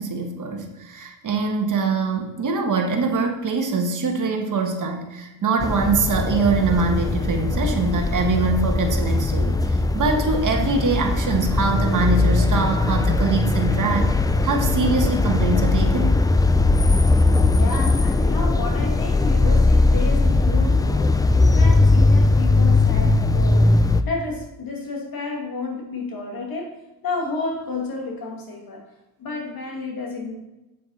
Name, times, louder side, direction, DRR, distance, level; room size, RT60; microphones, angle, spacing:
voice 1, 0.0-14.1 14.4-16.2, right 4 dB, 50° right, 3 dB, 1.5 m, -23 dB
sound 1, 5.6-24.0, left 3 dB, 10° left, 0.3 m, -19 dB
voice 2, 17.5-21.3 21.5-26.8 27.0-28.8 29.2-30.3, left 3 dB, 60° left, 0 dB, 2.3 m, -31 dB
8.2 x 7.4 x 4.2 m, 1.0 s
cardioid pair, 100°, 39 cm